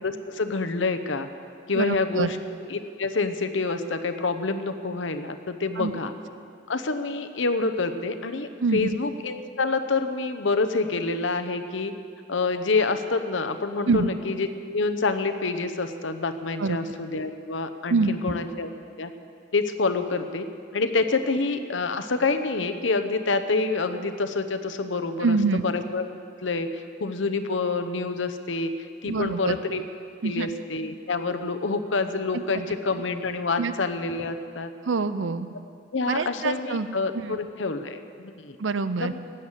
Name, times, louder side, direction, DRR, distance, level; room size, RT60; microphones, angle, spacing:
voice 1, 0.0-1.3 1.7-6.1 6.7-11.9 12.3-18.7 19.0-19.1 19.5-20.5 20.7-26.1 26.4-28.7 29.0-29.8 30.2-34.7 35.9-38.6 39.0-39.2, left 3 dB, 80° left, 9 dB, 0.9 m, -27 dB
voice 2, 1.7-2.3 5.8-5.9 8.6-9.0 13.9-14.1 16.6-16.8 17.9-18.4 25.2-25.6 29.0-29.6 30.2-30.5 33.6-33.7 34.8-35.5 36.1-36.9 37.1-37.4 38.6-39.1, right 4 dB, 80° right, 13 dB, 0.6 m, -25 dB
16.0 x 10.0 x 7.4 m, 2.4 s
head